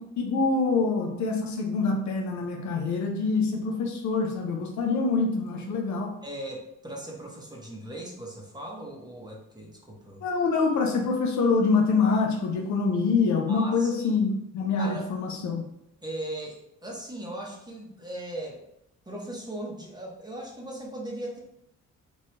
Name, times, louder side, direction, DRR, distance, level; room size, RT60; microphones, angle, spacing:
voice 1, 0.2-6.2 10.2-15.6, left 4 dB, 70° left, 2 dB, 0.6 m, -25 dB
voice 2, 6.2-10.2 13.5-14.1 14.8-15.1 16.0-18.7 19.1-21.4, right 1 dB, 15° right, -2 dB, 0.7 m, -38 dB
3.1 x 2.2 x 3.0 m, 0.78 s
cardioid pair, 90°, 30 cm